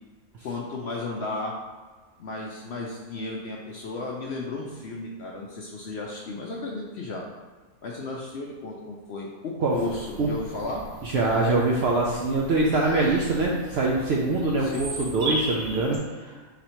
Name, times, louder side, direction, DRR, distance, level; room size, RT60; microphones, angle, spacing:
voice 1, 0.4-1.5 2.2-7.2 7.8-10.8 14.6-15.2, left 3 dB, 65° left, -2 dB, 0.7 m, -34 dB
Bird vocalization bird call bird song, 9.7-16.0, right 2 dB, 50° right, 1.2 m, -37 dB
voice 2, 11.0-16.3, right 2 dB, 70° right, -2 dB, 0.6 m, -24 dB
4.1 x 2.7 x 4.4 m, 1.3 s
omnidirectional pair, 1.5 m